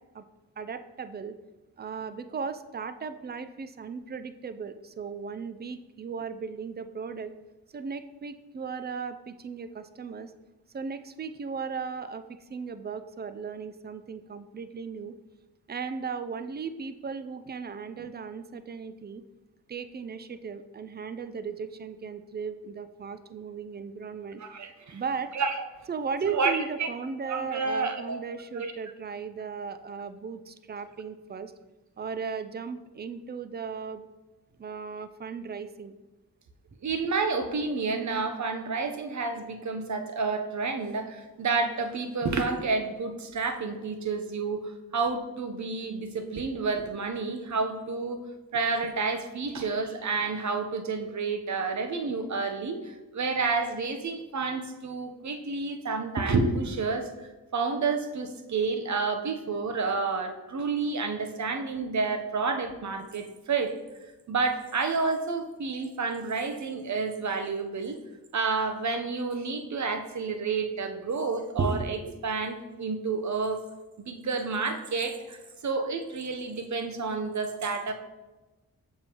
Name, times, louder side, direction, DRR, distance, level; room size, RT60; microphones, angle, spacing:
voice 1, 0.6-1.4 1.8-7.3 7.7-10.3 10.7-15.2 15.7-19.2 19.7-24.6 24.9-25.3 25.9-31.5 32.0-34.1 34.6-35.9, right 5 dB, 25° right, 11 dB, 0.4 m, -36 dB
voice 2, 24.4-25.0 25.3-25.6 26.2-26.5 26.8-26.9 27.2-28.2 28.6-28.7 31.0-31.1 36.8-48.2 48.5-63.7 64.3-68.0 68.3-73.6 74.0-77.9, right 4 dB, 50° right, 7 dB, 0.8 m, -30 dB
6.7 x 5.5 x 3.0 m, 1.1 s
supercardioid pair, 45°, 38 cm